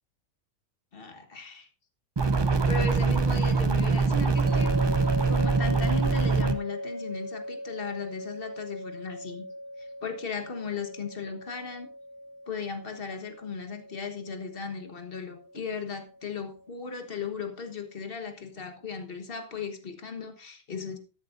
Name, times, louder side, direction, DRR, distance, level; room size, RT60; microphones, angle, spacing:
voice 1, 0.9-1.7 2.7-4.8 5.2-9.4 9.8-11.9 12.5-21.0, left 5 dB, 45° left, 6 dB, 1.6 m, -36 dB
sound 1, 2.2-6.5, right 4 dB, 35° right, 0.4 m, -24 dB
sound 2, 4.5-17.6, equal, 15° left, 1.5 m, -40 dB
13.0 x 11.0 x 2.6 m, 0.36 s
omnidirectional pair, 1.4 m